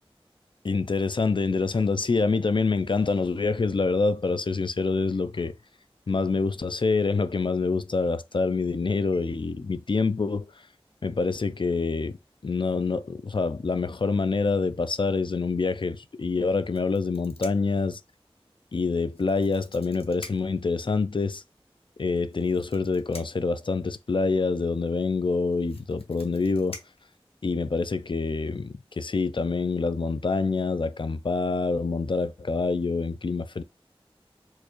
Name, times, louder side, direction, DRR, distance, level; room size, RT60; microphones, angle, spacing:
voice 1, 0.6-5.6 6.1-10.5 11.0-12.2 12.4-18.0 18.7-21.4 22.0-26.8 27.4-33.6, left 4 dB, 55° left, 0.4 m, -26 dB
sound 1, 16.7-17.8 19.1-20.6 22.1-23.6 25.0-25.1 25.3-27.7 28.6-28.8 29.2-29.4, left 2 dB, 70° left, 0.8 m, -47 dB
4.4 x 2.4 x 2.9 m
wide cardioid pair, 40°, 10 cm